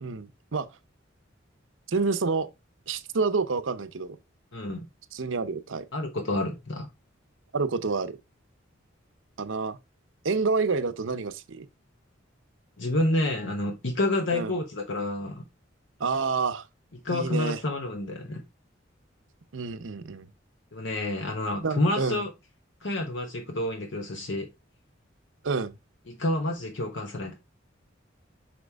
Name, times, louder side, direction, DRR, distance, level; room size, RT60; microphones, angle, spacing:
voice 1, 0.0-0.7 1.9-2.5 2.9-4.2 5.1-5.8 7.5-8.2 9.4-9.8 10.2-11.7 14.3-14.5 16.0-16.7 17.1-17.6 19.5-20.3 21.6-22.2 25.4-25.8, right 4 dB, 80° right, 0.7 m, -28 dB
voice 2, 5.9-6.9 12.8-15.4 17.0-18.4 20.7-22.3 22.8-24.5 26.1-27.4, left 1 dB, 70° left, 1.0 m, -29 dB
5.9 x 5.2 x 3.4 m
head